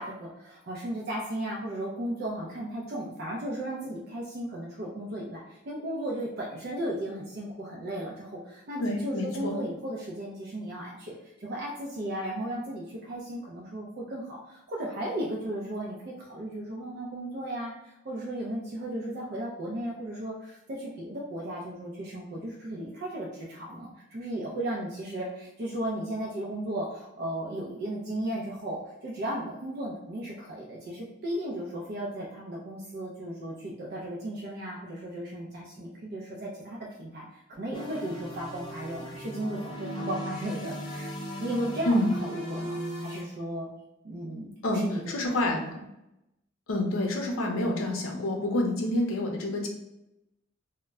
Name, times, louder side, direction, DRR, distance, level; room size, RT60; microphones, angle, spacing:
voice 1, 0.0-41.1 41.4-42.0 42.3-43.7 44.0-45.8, right 1 dB, 50° right, -4 dB, 0.4 m, -35 dB
voice 2, 8.8-9.6 41.8-42.1 44.6-45.6 46.7-49.7, left 1 dB, 85° left, 1 dB, 0.6 m, -28 dB
sound 1, 37.7-43.2, equal, 20° left, 0.4 m, -37 dB
2.1 x 2.1 x 3.4 m, 0.88 s
head